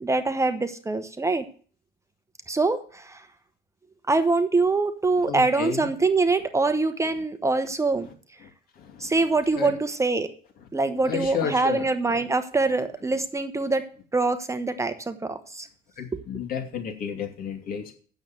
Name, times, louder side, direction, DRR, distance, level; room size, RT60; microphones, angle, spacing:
voice 1, 0.0-1.4 2.5-3.3 4.1-8.1 9.0-10.3 10.7-13.8 14.1-15.7, right 3 dB, 15° right, 10 dB, 0.9 m, -24 dB
voice 2, 5.2-5.9 8.0-8.1 8.4-8.5 8.7-9.1 9.6-9.7 11.0-12.2 16.0-17.9, left 7 dB, 60° left, 4 dB, 2.7 m, -32 dB
8.8 x 7.1 x 7.7 m, 0.44 s
cardioid pair, 110°, 17 cm